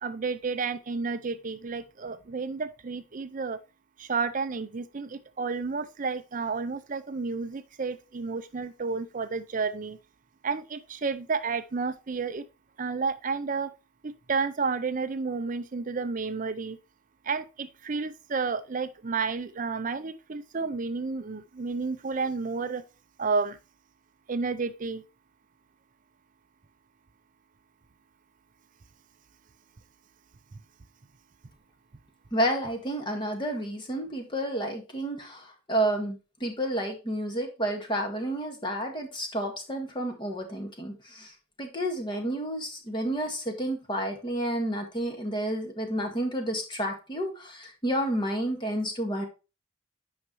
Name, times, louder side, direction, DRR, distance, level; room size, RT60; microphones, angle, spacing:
voice 1, 0.0-3.6 4.0-10.0 10.4-12.4 12.8-13.7 14.0-16.8 17.2-22.8 23.2-23.6 24.3-25.0 30.5-30.6, right 4 dB, 40° right, 0.5 m, -31 dB
voice 2, 32.3-41.3 41.6-49.2, right 1 dB, 25° left, 1.7 m, -30 dB
9.4 x 5.6 x 3.1 m
head